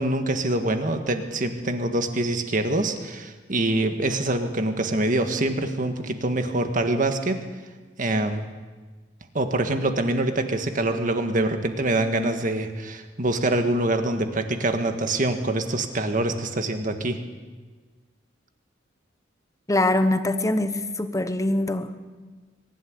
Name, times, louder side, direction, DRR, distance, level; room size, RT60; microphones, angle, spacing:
voice 1, 0.0-7.4 8.0-8.5 9.3-17.2, right 2 dB, 45° right, 6 dB, 1.7 m, -25 dB
voice 2, 19.7-22.0, left 1 dB, 20° left, 10 dB, 1.1 m, -23 dB
23.0 x 11.5 x 9.7 m, 1.4 s
head